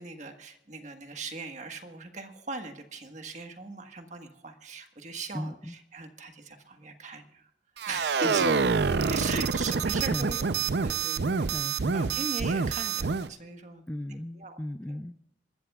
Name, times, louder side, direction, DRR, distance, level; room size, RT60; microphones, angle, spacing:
voice 1, 0.0-7.5 7.9-8.5 8.8-11.5 11.9-13.8 14.3-14.6, right 3 dB, 40° right, 5 dB, 1.5 m, -39 dB
voice 2, 5.3-5.8 8.2-8.3 10.1-10.6 11.5-12.3 13.9-15.2, left 1 dB, 10° left, 10 dB, 0.4 m, -37 dB
sound 1, 7.8-13.3, right 5 dB, 65° right, 0.6 m, -27 dB
27.0 x 13.5 x 2.4 m, 0.82 s
head